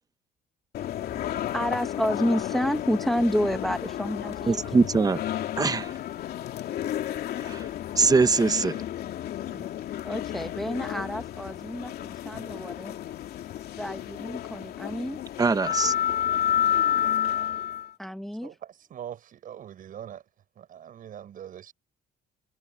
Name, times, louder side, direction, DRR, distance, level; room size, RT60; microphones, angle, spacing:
sound 1, 0.7-17.9, left 11 dB, 65° left, 2.8 m, -31 dB
voice 1, 1.5-4.6 9.5-9.7 10.0-12.9 13.8-15.2 18.0-18.5, equal, ahead, 1.4 m, -29 dB
voice 2, 4.5-5.2 5.6-5.9 7.4-7.7 8.0-8.8 15.4-15.9, right 4 dB, 20° right, 1.0 m, -22 dB
voice 3, 18.4-20.2 20.6-21.7, right 10 dB, 55° right, 6.2 m, -42 dB
cardioid pair, 110°, 17 cm